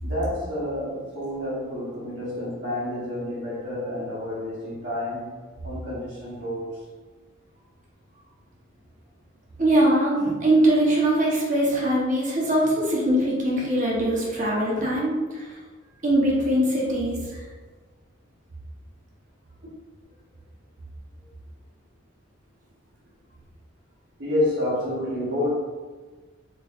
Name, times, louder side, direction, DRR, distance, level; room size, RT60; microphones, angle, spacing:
voice 1, 0.0-5.4 5.6-6.8 14.7-14.9 24.2-25.5, left 1 dB, 60° right, -8 dB, 1.2 m, -29 dB
voice 2, 9.6-15.5 16.0-17.4, right 1 dB, 40° right, -4 dB, 0.9 m, -22 dB
4.0 x 3.2 x 2.4 m, 1.3 s
head